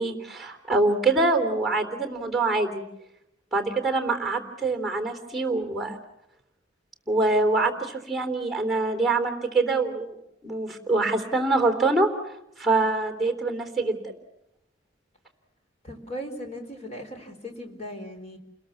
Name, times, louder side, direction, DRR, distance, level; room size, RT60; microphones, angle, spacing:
voice 1, 0.0-2.8 3.5-6.0 7.1-10.1 10.4-12.1 12.6-14.2, right 3 dB, ahead, 5 dB, 3.5 m, -24 dB
voice 2, 15.8-18.4, equal, 35° left, 4 dB, 3.9 m, -38 dB
29.5 x 21.5 x 7.2 m, 0.81 s
head